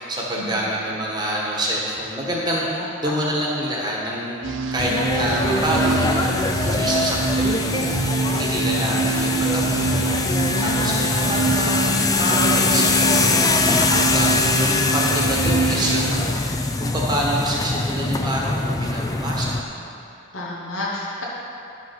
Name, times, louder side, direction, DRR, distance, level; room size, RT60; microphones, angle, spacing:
voice 1, 0.0-4.4 4.7-19.7, right 1 dB, 20° right, -4 dB, 1.3 m, -27 dB
sound 1, 4.4-16.1, right 4 dB, 65° right, 0.6 m, -26 dB
sound 2, 4.8-19.6, left 3 dB, 20° left, 0.3 m, -22 dB
voice 2, 10.6-10.9 20.3-21.2, left 2 dB, 75° left, -5 dB, 1.4 m, -30 dB
11.0 x 5.4 x 5.8 m, 2.8 s
head